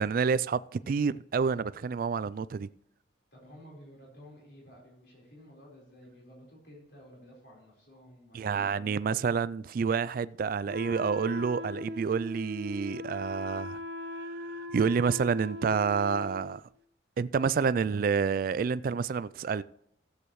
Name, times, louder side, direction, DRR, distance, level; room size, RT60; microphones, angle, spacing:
voice 1, 0.0-2.7 8.3-13.8 14.6-16.6 17.2-19.6, right 5 dB, 50° right, 0.3 m, -28 dB
voice 2, 3.3-9.3, left 1 dB, 65° left, 4.3 m, -53 dB
Wind instrument woodwind instrument, 10.7-16.6, left 1 dB, 70° right, 0.9 m, -39 dB
15.0 x 8.2 x 3.1 m
head